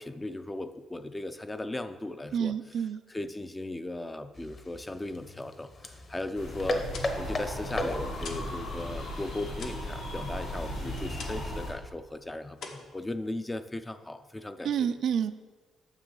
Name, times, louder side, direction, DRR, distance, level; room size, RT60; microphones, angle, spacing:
voice 1, 0.0-6.9 7.2-15.0, left 2 dB, 15° left, 10 dB, 0.4 m, -37 dB
voice 2, 2.3-3.0 14.6-15.3, right 8 dB, 65° right, 11 dB, 0.4 m, -28 dB
sound 1, 4.3-8.4, left 1 dB, 35° left, 0.9 m, -36 dB
sound 2, 6.3-11.7, left 1 dB, 90° left, 2.4 m, -36 dB
sound 3, 6.9-8.6 8.9-11.6 11.9-12.2 12.5-13.6, left 4 dB, 70° left, 1.1 m, -46 dB
9.0 x 6.9 x 3.9 m, 1.4 s
cardioid pair, 120°, 0 cm